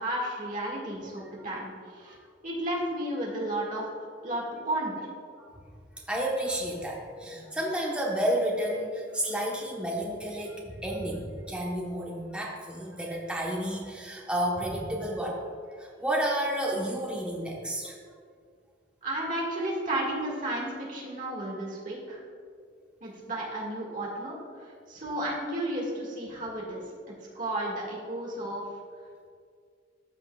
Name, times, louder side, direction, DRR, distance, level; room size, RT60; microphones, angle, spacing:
voice 1, 0.0-2.2 2.4-3.9 4.2-5.1 19.0-22.2 23.0-26.8 27.3-28.6, right 1 dB, 45° right, -3 dB, 1.7 m, -33 dB
voice 2, 6.1-15.4 15.8-18.0, right 1 dB, 5° right, -3 dB, 1.0 m, -31 dB
13.5 x 5.5 x 2.3 m, 2.1 s
head